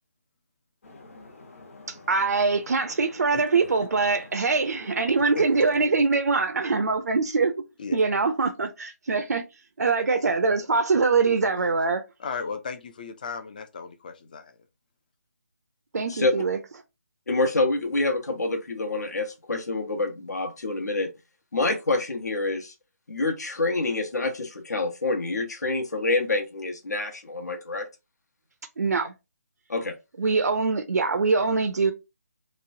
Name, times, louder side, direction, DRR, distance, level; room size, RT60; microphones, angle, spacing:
sound 1, 0.8-5.9, left 2 dB, 55° left, 1.1 m, -49 dB
voice 1, 1.9-7.5 7.9-9.4 9.8-12.0 15.9-16.6 28.8-29.1 30.2-31.9, right 4 dB, 75° right, 0.5 m, -23 dB
voice 2, 12.2-14.6, left 5 dB, 30° left, 0.4 m, -35 dB
voice 3, 17.3-21.1 21.5-22.7 23.1-27.9 29.7-30.0, left 2 dB, 80° left, 1.0 m, -27 dB
3.0 x 2.1 x 2.6 m
hypercardioid pair, 165°, 9 cm